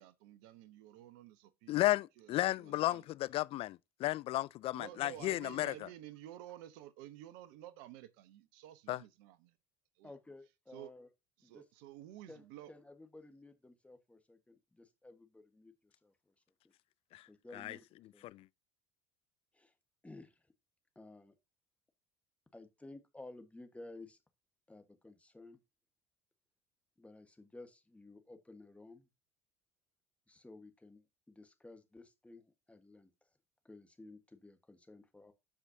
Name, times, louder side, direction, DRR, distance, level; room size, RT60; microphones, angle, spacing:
voice 1, 0.0-1.8 2.2-3.0 4.7-9.5 10.0-10.1 10.7-10.9 11.4-12.7, right 13 dB, 70° right, 0.9 m, -52 dB
voice 2, 1.7-5.9 8.9-9.0 17.1-17.8 18.2-18.5, left 16 dB, 50° left, 0.4 m, -34 dB
voice 3, 10.0-11.1 11.4-11.6 12.3-16.3 16.6-16.7 17.3-17.8 18.1-18.3 19.5-19.7 20.0-20.5 20.9-21.3 22.5-24.2 24.7-25.6 27.0-29.1 30.3-33.1 33.6-35.3, left 2 dB, 10° left, 1.4 m, -55 dB
13.0 x 5.0 x 2.7 m
hypercardioid pair, 75°, 12 cm